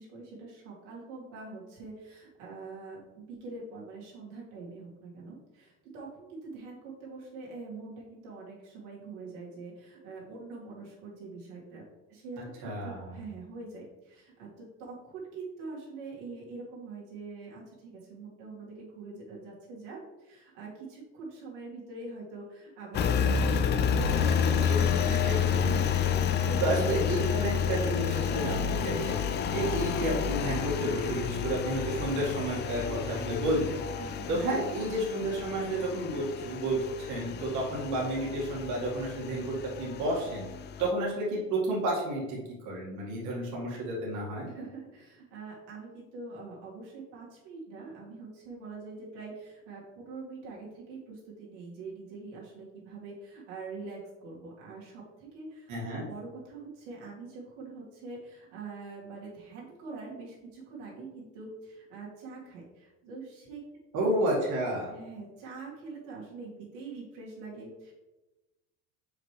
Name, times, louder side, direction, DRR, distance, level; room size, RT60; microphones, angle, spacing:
voice 1, 0.0-11.8 12.1-24.7 25.0-25.3 26.0-26.6 34.0-34.5 44.4-63.6 64.9-67.9, right 3 dB, 85° right, -5 dB, 2.1 m, -44 dB
voice 2, 12.6-13.2 24.4-24.5 25.1-26.0 26.6-29.2 29.5-33.8 34.3-40.4 40.8-42.4 42.7-44.5 55.7-56.0 63.9-64.9, right 1 dB, 55° right, -4 dB, 1.9 m, -31 dB
Engine, 22.9-40.9, left 7 dB, 30° left, 0.4 m, -30 dB
5.8 x 5.2 x 3.3 m, 1.1 s
supercardioid pair, 115°, 35 cm